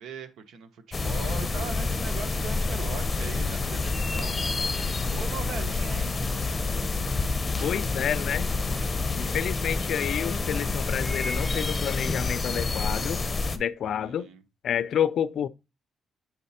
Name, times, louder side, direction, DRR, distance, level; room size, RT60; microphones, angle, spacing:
voice 1, 0.0-6.3 14.0-14.4, right 6 dB, 75° right, 1.1 m, -40 dB
sound 1, 0.9-13.6, left 3 dB, 25° left, 0.8 m, -28 dB
voice 2, 7.6-8.5 9.2-13.2 13.5-14.3 14.6-15.5, left 9 dB, 65° left, 0.4 m, -29 dB
8.2 x 4.2 x 4.2 m
cardioid pair, 90°, 0 cm